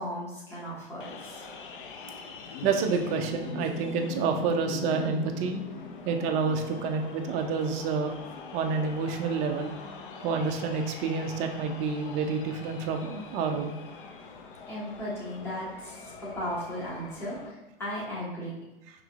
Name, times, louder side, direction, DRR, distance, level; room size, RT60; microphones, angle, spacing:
voice 1, 0.0-1.4 14.7-18.6, equal, 10° left, -8 dB, 1.2 m, -36 dB
sound 1, 1.0-17.5, left 5 dB, 60° left, 0.6 m, -42 dB
voice 2, 2.6-5.6 6.1-8.1 8.5-9.7 10.2-13.8, right 5 dB, 25° right, 4 dB, 0.4 m, -28 dB
5.7 x 3.0 x 2.4 m, 1.0 s
figure-of-eight pair, 95°, 30 cm